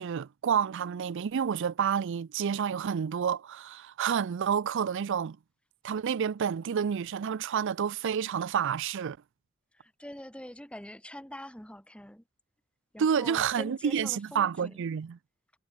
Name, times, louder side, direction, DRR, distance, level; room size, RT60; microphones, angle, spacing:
voice 1, 0.0-5.4 5.8-9.2 13.0-15.2, right 7 dB, 60° right, 0.4 m, -29 dB
voice 2, 9.7-12.2 12.9-14.8, left 1 dB, 5° left, 2.9 m, -44 dB
head